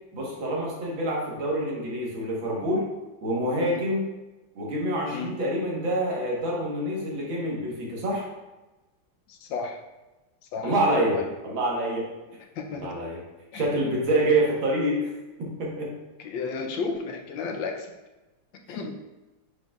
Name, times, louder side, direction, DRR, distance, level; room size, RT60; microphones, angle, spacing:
voice 1, 0.1-2.9 3.2-4.1 4.6-8.3 10.6-12.1 12.7-13.2 13.5-15.1 15.4-15.9, right 1 dB, 85° right, -3 dB, 2.1 m, -26 dB
voice 2, 9.3-9.8 10.5-11.3 12.5-13.0 13.5-13.6 14.2-14.3 16.2-17.9 18.5-19.0, left 5 dB, 80° left, 3 dB, 1.4 m, -33 dB
9.2 x 4.4 x 2.4 m, 1.1 s
omnidirectional pair, 2.1 m